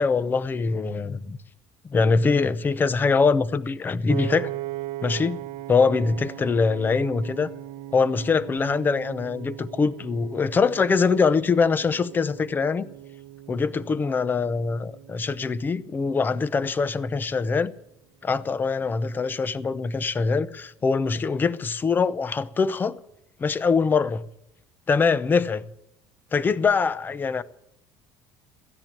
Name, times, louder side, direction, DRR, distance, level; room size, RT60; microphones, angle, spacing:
voice 1, 0.0-1.4 1.9-4.5 5.0-5.4 5.7-7.5 7.9-12.9 13.5-17.7 18.2-23.0 23.4-24.2 24.9-25.6 26.3-27.4, left 4 dB, 20° left, 0.7 m, -23 dB
Piano, 4.1-16.3, right 15 dB, 80° right, 0.9 m, -39 dB
15.0 x 10.5 x 8.9 m
cardioid pair, 130°, 9 cm